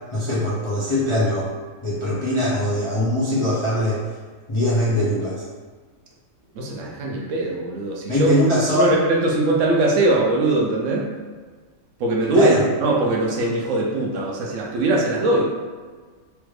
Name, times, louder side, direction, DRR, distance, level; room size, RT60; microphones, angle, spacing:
voice 1, 0.1-1.5 1.8-4.0 4.5-5.4 8.1-9.0 12.3-12.5, left 1 dB, 45° left, -9 dB, 0.3 m, -21 dB
voice 2, 6.6-8.3 8.8-11.1 12.0-15.4, right 2 dB, 70° right, -2 dB, 0.8 m, -21 dB
3.3 x 2.4 x 3.1 m, 1.5 s
omnidirectional pair, 1.5 m